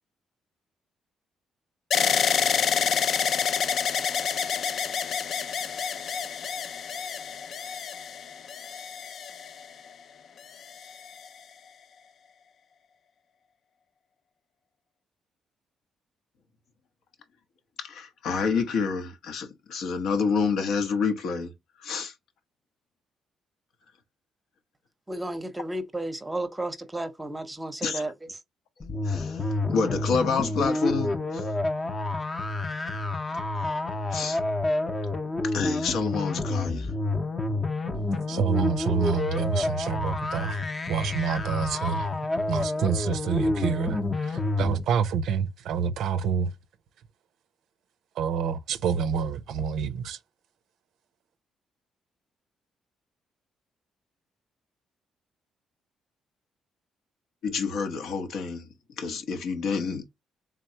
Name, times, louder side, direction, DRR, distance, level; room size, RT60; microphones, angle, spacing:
sound 1, 1.9-9.9 10.6-11.3, left 7 dB, 60° left, 0.3 m, -28 dB
voice 1, 17.8-21.5 21.8-22.1 27.8-28.1 29.0-31.5 33.3-33.7 34.1-34.4 35.4-36.9 57.4-60.0, left 5 dB, 80° left, 0.9 m, -29 dB
voice 2, 25.1-28.1, right 1 dB, 15° right, 0.7 m, -33 dB
sound 2, 28.8-44.8, left 2 dB, 30° left, 0.6 m, -29 dB
voice 3, 38.3-40.6 40.9-42.1 42.5-46.5 48.2-50.2, right 6 dB, 80° right, 0.4 m, -28 dB
3.7 x 3.2 x 2.8 m
cardioid pair, 90°, 0 cm